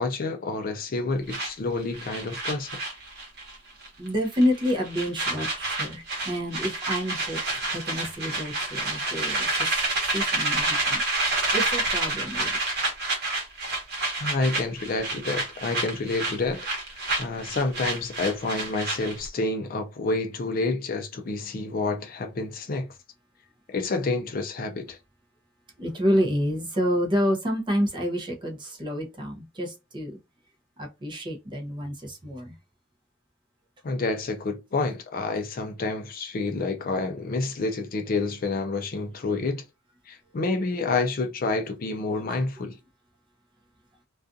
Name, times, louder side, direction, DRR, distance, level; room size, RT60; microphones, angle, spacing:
voice 1, 0.0-2.8 14.2-22.9 23.7-25.0 33.8-39.6 40.1-42.7, left 3 dB, 45° left, 0.4 m, -29 dB
sound 1, 1.3-3.6 3.8-4.1 4.4-19.3, right 2 dB, 55° right, 1.0 m, -29 dB
voice 2, 4.0-9.8 10.1-11.0 11.5-12.6 25.8-30.2 30.8-32.5 42.3-42.4, equal, 25° right, 0.6 m, -28 dB
2.4 x 2.4 x 2.5 m
head